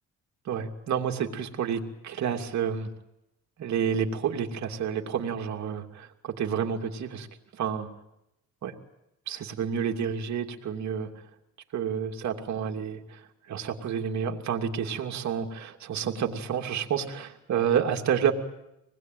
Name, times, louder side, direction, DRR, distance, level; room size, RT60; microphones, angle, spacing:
voice 1, 0.5-2.9 3.6-7.3 7.5-7.9 8.6-8.7 9.3-11.1 11.7-13.2 13.5-18.3, right 7 dB, 65° right, 3 dB, 2.8 m, -29 dB
26.0 x 20.0 x 9.4 m, 0.88 s
cardioid pair, 90°, 30 cm